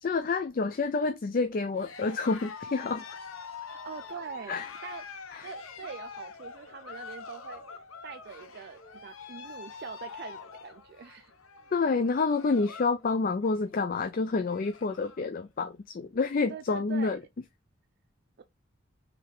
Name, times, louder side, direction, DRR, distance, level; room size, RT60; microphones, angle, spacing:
voice 1, 0.0-3.0 4.5-4.7 5.3-5.5 11.7-17.2, left 4 dB, 45° left, 0.4 m, -28 dB
Cheering, 1.7-13.0 13.3-13.7 14.1-14.2 14.4-15.2, left 5 dB, 90° left, 0.8 m, -45 dB
voice 2, 3.6-5.0 5.4-7.6 8.0-11.3 16.5-17.2 18.4-18.5, right 6 dB, 50° right, 0.4 m, -43 dB
4.9 x 3.3 x 3.1 m
head